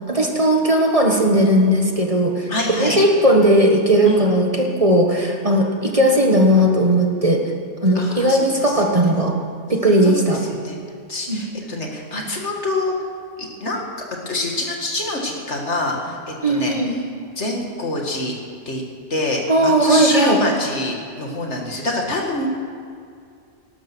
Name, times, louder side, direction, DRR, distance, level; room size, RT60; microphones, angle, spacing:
voice 1, 0.1-2.5 2.8-7.4 7.8-9.3 9.7-10.4 11.3-11.4 16.4-16.9 19.5-20.4, right 1 dB, 30° right, 1 dB, 1.5 m, -17 dB
voice 2, 2.5-3.0 4.1-4.3 7.9-9.4 10.0-10.2 10.6-10.8 11.1-12.9 13.4-13.9 14.3-17.0 17.4-18.3 18.7-18.8 19.1-22.5, left 2 dB, 70° left, 0 dB, 2.4 m, -26 dB
18.5 x 12.0 x 6.2 m, 2.3 s
omnidirectional pair, 1.2 m